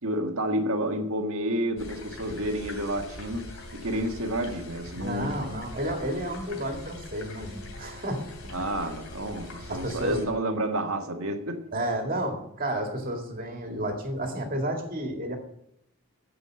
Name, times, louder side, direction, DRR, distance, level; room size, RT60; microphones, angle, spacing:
voice 1, 0.0-5.6 8.5-11.7, right 1 dB, 85° right, 1.6 m, -30 dB
sound 1, 1.8-10.3, left 2 dB, 80° left, 2.9 m, -42 dB
voice 2, 5.0-8.6 9.7-10.2 11.7-15.4, right 1 dB, 40° right, 2.2 m, -31 dB
9.8 x 7.6 x 7.6 m
head